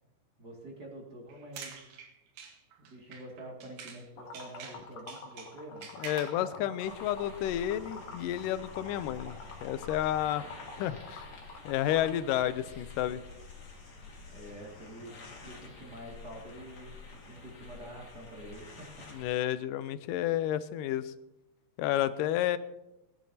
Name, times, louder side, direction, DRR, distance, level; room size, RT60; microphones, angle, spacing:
voice 1, 0.4-1.8 2.8-5.9 14.3-15.1 15.4-18.9, right 1 dB, 35° right, -1 dB, 2.5 m, -47 dB
sound 1, 1.3-4.1 4.3-6.4, right 6 dB, 90° right, 2.7 m, -47 dB
Liquid, 4.2-12.2, left 4 dB, 55° left, 2.1 m, -47 dB
voice 2, 6.0-10.5 10.8-11.3 11.7-13.2 19.1-21.1 21.8-22.6, left 12 dB, 90° left, 13 dB, 2.2 m, -31 dB
sound 2, 6.8-19.2, left 4 dB, 35° left, 2.0 m, -49 dB
20.5 x 10.5 x 2.8 m, 0.95 s
omnidirectional pair, 3.7 m